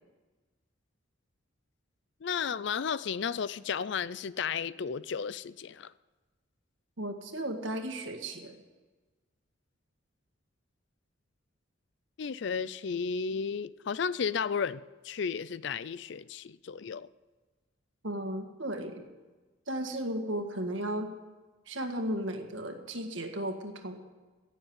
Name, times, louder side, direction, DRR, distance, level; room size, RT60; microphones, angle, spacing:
voice 1, 2.2-5.9 12.2-17.1, left 6 dB, 60° left, 17 dB, 0.4 m, -33 dB
voice 2, 7.0-8.6 18.0-19.1 19.7-21.1 21.7-24.0, right 1 dB, 65° right, 5 dB, 1.8 m, -35 dB
16.5 x 7.2 x 9.3 m, 1.3 s
head